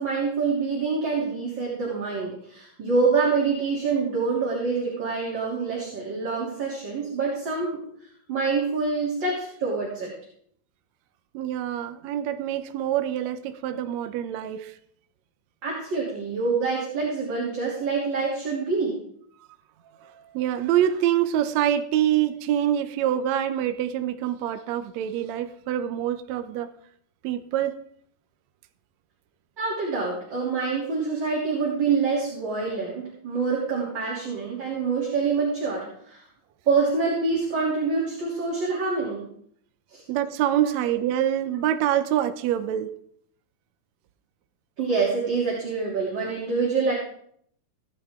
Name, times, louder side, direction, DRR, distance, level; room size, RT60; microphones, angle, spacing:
voice 1, 0.0-7.8 8.3-10.1 15.6-19.0 29.6-36.2 36.7-39.3 39.9-40.0 40.6-40.7 44.8-46.9, right 4 dB, 35° right, -4 dB, 3.4 m, -26 dB
voice 2, 11.3-14.7 20.0-26.7 27.2-27.8 40.1-42.9, right 11 dB, 75° right, 9 dB, 1.7 m, -25 dB
17.5 x 10.5 x 3.7 m, 0.66 s
omnidirectional pair, 3.6 m